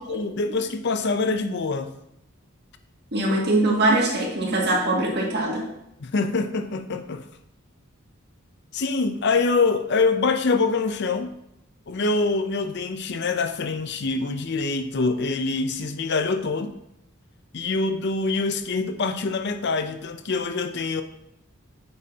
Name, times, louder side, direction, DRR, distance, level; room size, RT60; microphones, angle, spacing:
voice 1, 0.0-1.9 6.0-7.3 8.7-11.3 11.9-16.7 17.5-21.0, left 3 dB, 55° left, 8 dB, 0.6 m, -25 dB
voice 2, 3.1-5.6, right 2 dB, 55° right, -2 dB, 2.2 m, -22 dB
9.0 x 8.5 x 2.9 m, 0.80 s
head